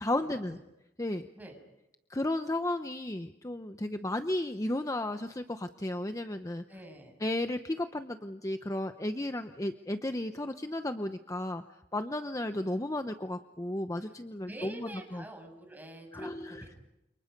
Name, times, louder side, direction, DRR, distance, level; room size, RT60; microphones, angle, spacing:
voice 1, 0.0-0.6 1.0-1.3 2.1-6.6 7.2-11.6 11.9-15.2 16.1-16.7, left 1 dB, 20° left, 8 dB, 0.9 m, -34 dB
voice 2, 6.7-7.1 14.5-16.9, right 1 dB, 10° right, 3 dB, 7.1 m, -47 dB
30.0 x 28.5 x 5.3 m, 0.87 s
head